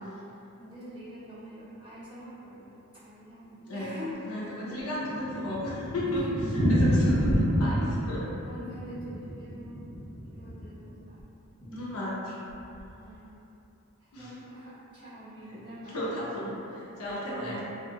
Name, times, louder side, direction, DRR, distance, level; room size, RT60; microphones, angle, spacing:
voice 1, 0.6-4.2 4.6-4.7 8.4-9.8 10.4-11.2 12.9-13.3 14.0-16.0 17.0-17.2 17.4-17.5, equal, 20° right, -14 dB, 1.0 m, -45 dB
voice 2, 3.7-4.0 4.3-8.3 11.7-12.4 14.1-14.3 15.5-15.6 15.9-17.6, equal, 75° left, -6 dB, 0.6 m, -34 dB
Thunder, 4.9-10.9 11.2-11.3 11.6-11.7 11.9-12.0 12.6-12.9, equal, 40° left, 1.1 m, -28 dB
2.6 x 2.3 x 2.8 m, 2.9 s
head